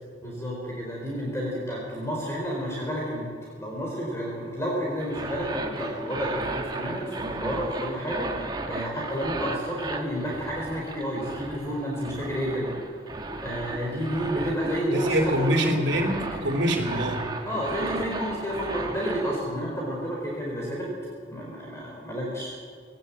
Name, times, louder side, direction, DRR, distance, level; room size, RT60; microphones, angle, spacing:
voice 1, 0.2-3.3 3.6-12.7 13.4-16.1 17.4-20.9 21.3-22.5, equal, 15° left, -3 dB, 4.3 m, -30 dB
sound 1, 5.0-19.4, right 2 dB, 25° right, 1.7 m, -35 dB
voice 2, 14.9-17.3, right 1 dB, 80° right, 2 dB, 3.5 m, -25 dB
20.0 x 18.0 x 8.7 m, 2.2 s
head